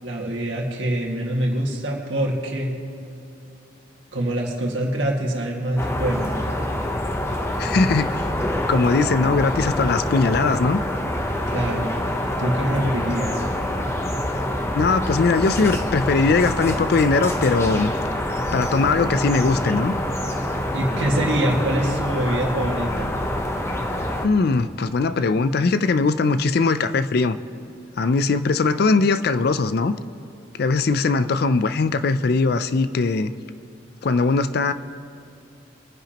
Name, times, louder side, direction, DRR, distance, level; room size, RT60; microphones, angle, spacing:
voice 1, 0.0-2.7 4.1-6.3 11.5-11.9 12.4-13.4 20.7-23.1, right 1 dB, 75° right, -1 dB, 1.9 m, -24 dB
sound 1, 5.8-24.3, left 1 dB, 15° left, 0.8 m, -26 dB
voice 2, 7.6-8.3 8.7-10.8 14.8-17.9 18.5-19.9 24.2-27.4 28.0-29.9 30.6-33.3 34.0-34.7, left 3 dB, 55° left, 13 dB, 0.4 m, -20 dB
26.5 x 10.0 x 3.0 m, 2.6 s
head